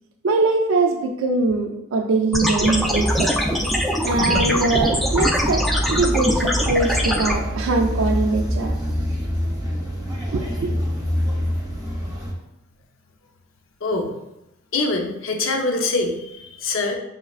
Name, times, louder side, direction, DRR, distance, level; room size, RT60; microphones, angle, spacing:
voice 1, 0.2-3.3 4.0-8.7 10.3-10.7, right 3 dB, 75° right, 3 dB, 0.4 m, -22 dB
sound 1, 2.3-7.3, equal, ahead, 0.3 m, -22 dB
sound 2, 2.6-12.3, equal, 20° right, 0.8 m, -26 dB
voice 2, 13.8-14.1 14.7-17.0, left 3 dB, 75° left, 3 dB, 0.6 m, -24 dB
5.7 x 3.2 x 2.4 m, 0.89 s
head